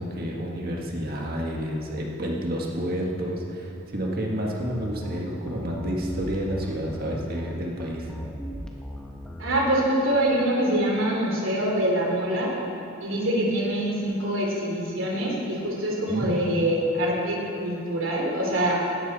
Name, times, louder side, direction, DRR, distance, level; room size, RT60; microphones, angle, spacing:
voice 1, 0.0-8.1 16.1-16.3, equal, 50° right, -1 dB, 1.7 m, -30 dB
sound 1, 4.6-9.6, equal, 5° left, 1.2 m, -38 dB
voice 2, 9.4-12.5 13.0-18.8, right 1 dB, 70° right, -2 dB, 3.0 m, -25 dB
16.0 x 12.5 x 4.2 m, 2.8 s
head